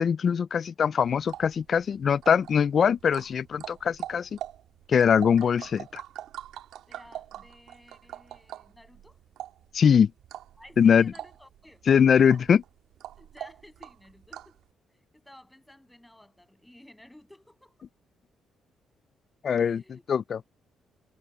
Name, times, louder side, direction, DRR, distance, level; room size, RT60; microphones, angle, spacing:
voice 1, 0.0-4.3 4.9-6.0 9.7-10.1 10.8-11.1 11.9-12.6 19.4-19.8 20.1-20.4, left 7 dB, 50° left, 0.4 m, -22 dB
sound 1, 1.0-14.6, right 12 dB, 85° right, 3.4 m, -44 dB
voice 2, 6.9-9.2 10.6-12.0 13.2-14.6 15.1-17.9 19.5-20.0, left 1 dB, 5° left, 7.4 m, -53 dB
cardioid pair, 90°, 0 cm